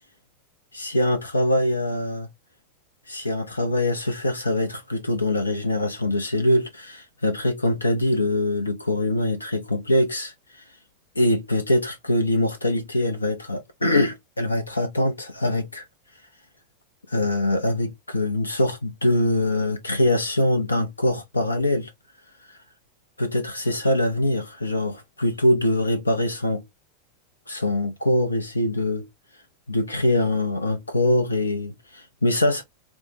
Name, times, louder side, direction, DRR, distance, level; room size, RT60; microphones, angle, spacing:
voice 1, 0.7-2.3 3.1-10.7 11.2-15.9 17.1-21.9 22.5-22.6 23.2-26.6 27.5-29.1 29.7-32.6, left 1 dB, 80° left, 0.5 m, -23 dB
4.2 x 2.1 x 3.2 m
figure-of-eight pair, 90°, 0 cm